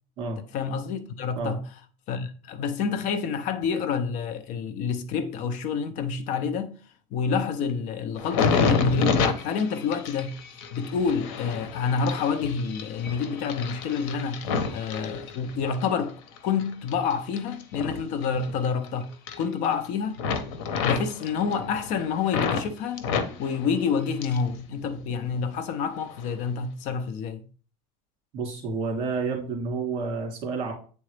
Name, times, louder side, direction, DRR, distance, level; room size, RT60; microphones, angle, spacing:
voice 1, 0.5-1.6 2.1-6.8 7.1-10.4 10.7-14.4 14.7-19.1 19.4-20.2 20.8-23.1 23.4-27.5, left 6 dB, 55° left, 0.6 m, -28 dB
sound 1, 8.2-15.8 16.3-18.9 19.1-19.9 20.2-22.7 23.0-24.5 24.8-25.6 26.1-26.3, left 5 dB, 90° left, 0.9 m, -30 dB
voice 2, 28.3-30.7, right 4 dB, 40° right, 2.4 m, -30 dB
8.3 x 3.8 x 3.3 m
cardioid pair, 175°, 16 cm